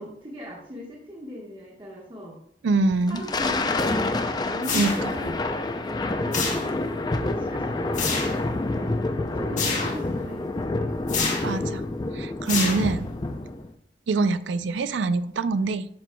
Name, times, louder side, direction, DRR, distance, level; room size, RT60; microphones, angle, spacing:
voice 1, 0.0-2.3 3.1-5.3 5.9-6.5 7.1-10.9 13.2-13.5, left 1 dB, 30° right, -4 dB, 1.2 m, -39 dB
voice 2, 2.6-3.2 4.7-4.9 11.4-11.8 12.1-13.1 14.1-15.9, right 3 dB, 90° right, 13 dB, 0.4 m, -24 dB
Thunder, 2.9-13.7, left 2 dB, 25° left, 0.4 m, -28 dB
sound 1, 4.6-5.3 6.3-7.0 7.9-8.4 9.6-10.1 11.1-11.6 12.5-13.2, left 4 dB, 45° left, 1.4 m, -28 dB
10.5 x 5.9 x 2.2 m, 0.69 s
head